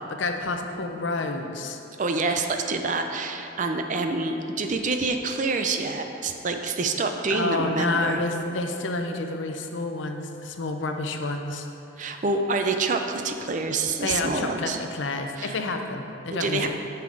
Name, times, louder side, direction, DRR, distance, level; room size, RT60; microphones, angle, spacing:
voice 1, 0.0-1.8 7.3-11.7 14.0-16.7, left 3 dB, 80° left, 5 dB, 0.6 m, -29 dB
voice 2, 2.0-8.2 12.0-14.8 15.4-15.6 16.3-16.7, right 3 dB, 40° right, 5 dB, 0.5 m, -27 dB
9.2 x 5.7 x 3.8 m, 2.8 s
head